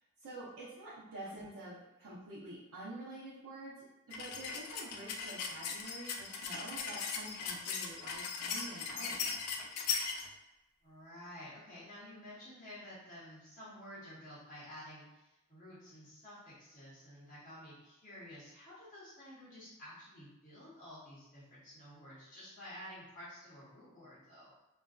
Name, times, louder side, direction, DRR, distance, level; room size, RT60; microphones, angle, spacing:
voice 1, 0.2-9.4, right 1 dB, 85° right, -11 dB, 0.7 m, -48 dB
sound 1, 4.1-10.3, left 5 dB, 90° left, 0.3 m, -39 dB
voice 2, 10.8-24.5, equal, 35° left, -9 dB, 0.8 m, -51 dB
2.5 x 2.2 x 2.3 m, 0.98 s
head